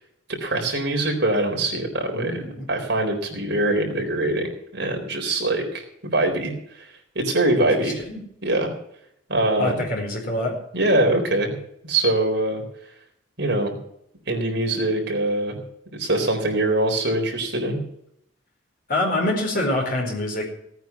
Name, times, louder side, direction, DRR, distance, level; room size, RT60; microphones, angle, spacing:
voice 1, 0.4-2.4 2.7-4.5 4.7-8.0 8.4-8.7 9.3-9.8 10.7-12.6 13.4-13.7 14.3-15.6 15.9-17.8, right 2 dB, 55° right, 1 dB, 3.9 m, -23 dB
voice 2, 2.1-2.7 7.8-8.2 9.6-10.6 18.9-20.5, left 1 dB, 45° left, 0 dB, 4.7 m, -25 dB
17.5 x 9.3 x 5.9 m, 0.74 s
head